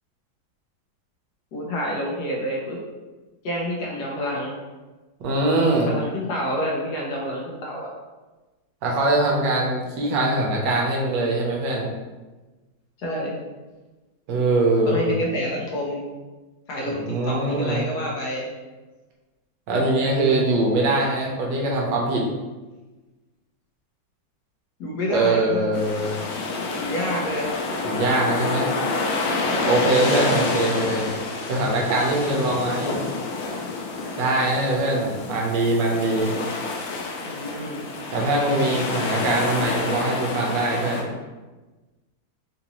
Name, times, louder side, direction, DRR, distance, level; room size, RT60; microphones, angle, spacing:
voice 1, 1.5-2.8 3.4-4.5 5.9-7.9 13.0-13.3 14.9-16.0 16.7-18.5 24.8-25.8 26.7-27.5 30.1-30.4 37.2-37.8, equal, 65° left, -3 dB, 1.1 m, -28 dB
voice 2, 5.2-5.9 8.8-11.9 14.3-15.1 17.0-17.9 19.7-22.2 25.1-26.1 27.9-28.7 29.7-31.1 31.5-32.9 34.2-36.3 38.1-41.1, right 2 dB, 70° right, -2 dB, 1.3 m, -22 dB
sound 1, 25.7-41.0, left 3 dB, 90° left, 1.3 m, -28 dB
3.7 x 2.6 x 2.9 m, 1.2 s
omnidirectional pair, 2.0 m